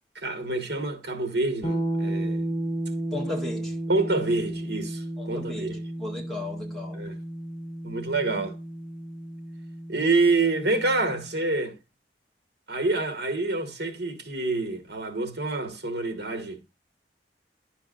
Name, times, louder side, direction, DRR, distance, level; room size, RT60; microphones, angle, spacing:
voice 1, 0.1-2.4 3.9-5.8 6.9-7.1 7.8-8.6 9.9-11.8 12.7-16.6, right 3 dB, 65° right, 1.5 m, -27 dB
sound 1, 1.6-11.4, right 1 dB, 40° left, 1.7 m, -33 dB
voice 2, 3.1-3.8 5.2-7.1, left 2 dB, ahead, 2.0 m, -36 dB
11.0 x 6.8 x 2.5 m
head